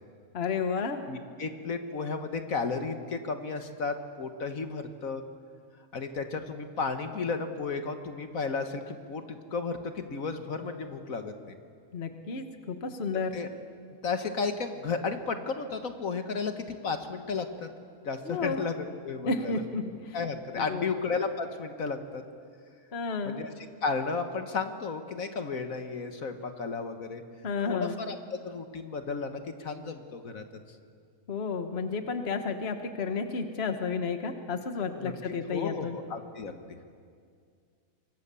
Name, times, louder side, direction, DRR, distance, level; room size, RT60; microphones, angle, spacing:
voice 1, 0.3-1.1 11.9-13.4 18.2-18.6 19.2-20.2 20.5-20.9 22.9-23.4 27.4-28.0 31.3-36.0, left 4 dB, 45° left, 7 dB, 1.5 m, -32 dB
voice 2, 1.1-5.2 5.9-11.6 13.3-13.5 14.0-17.7 18.0-19.6 20.1-22.2 23.2-23.5 23.8-27.2 27.6-28.1 28.4-30.4 35.0-35.1 35.5-36.6, left 4 dB, 65° left, 7 dB, 1.7 m, -33 dB
25.5 x 24.0 x 7.0 m, 2.2 s
omnidirectional pair, 1.6 m